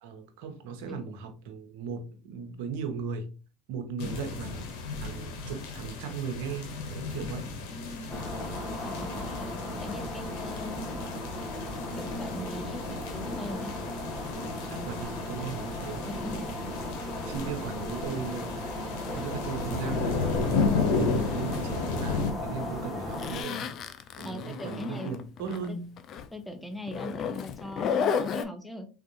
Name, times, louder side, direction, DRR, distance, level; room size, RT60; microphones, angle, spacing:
voice 1, 0.0-3.3 3.7-4.7 5.0-7.5 14.7-16.5 17.0-18.8 19.1-23.7 24.2-26.0, right 6 dB, 75° right, 0.8 m, -37 dB
sound 1, 4.0-22.3, left 4 dB, 75° left, 0.9 m, -34 dB
voice 2, 4.0-4.6 7.4-8.2 8.7-11.0 12.0-13.7 15.8-16.5 24.2-25.1 25.7-25.8 26.3-28.9, left 1 dB, 5° left, 0.7 m, -41 dB
sound 2, 8.1-23.4, left 1 dB, 30° left, 1.2 m, -36 dB
Zipper (clothing), 23.1-25.7 26.0-26.3 26.9-28.4, left 7 dB, 50° left, 0.4 m, -32 dB
3.6 x 2.5 x 2.7 m
supercardioid pair, 100°, 0 cm